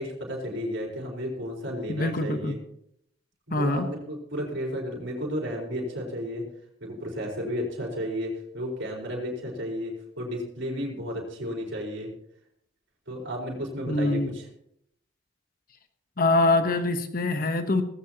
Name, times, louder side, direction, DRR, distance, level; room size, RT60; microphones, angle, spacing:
voice 1, 0.0-2.6 3.5-6.4 6.8-12.1 13.1-14.5, equal, 75° right, -2 dB, 4.5 m, -33 dB
voice 2, 1.9-2.5 3.5-3.9 13.9-14.3 16.2-17.8, left 2 dB, 45° left, 7 dB, 1.0 m, -24 dB
17.5 x 16.0 x 2.9 m, 0.73 s
head